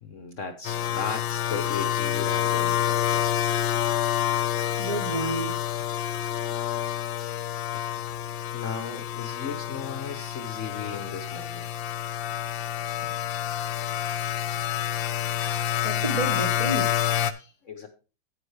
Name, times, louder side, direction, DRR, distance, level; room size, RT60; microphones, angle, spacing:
voice 1, 0.0-3.3 7.9-8.0 8.5-11.7 17.6-17.9, left 5 dB, 55° left, 1.0 m, -36 dB
sound 1, 0.6-17.3, left 10 dB, 90° left, 1.4 m, -28 dB
voice 2, 4.8-5.6 6.4-6.7 15.4-15.6 15.8-17.5, right 2 dB, 30° right, 0.7 m, -32 dB
9.7 x 8.6 x 3.3 m
omnidirectional pair, 2.0 m